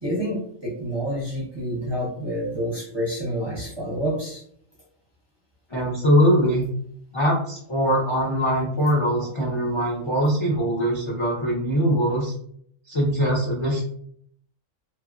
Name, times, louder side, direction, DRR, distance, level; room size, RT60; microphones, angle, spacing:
voice 1, 0.0-4.4, equal, 25° right, -5 dB, 0.6 m, -28 dB
voice 2, 5.7-6.7 7.1-12.3 12.9-13.8, equal, 45° left, -5 dB, 0.4 m, -22 dB
2.8 x 2.3 x 2.4 m, 0.65 s
omnidirectional pair, 1.3 m